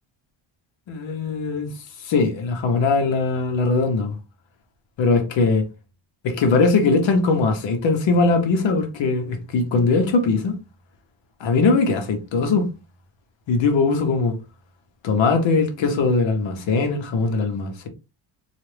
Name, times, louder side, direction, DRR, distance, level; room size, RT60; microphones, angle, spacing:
voice 1, 0.9-1.7 2.0-4.1 5.0-5.7 6.2-10.5 11.4-12.7 13.5-14.4 15.0-17.9, left 4 dB, 60° left, 1.1 m, -20 dB
4.1 x 2.5 x 3.3 m
cardioid pair, 160°, 50 cm